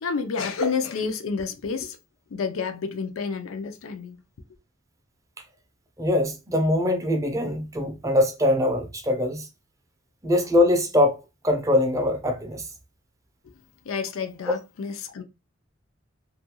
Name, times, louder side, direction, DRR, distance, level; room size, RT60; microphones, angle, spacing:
voice 1, 0.0-2.0 2.3-4.2 13.9-15.2, left 5 dB, 90° left, 0.4 m, -29 dB
voice 2, 6.0-9.5 10.2-11.2 11.4-12.7, left 1 dB, 15° right, 0.4 m, -22 dB
2.4 x 2.2 x 2.9 m
head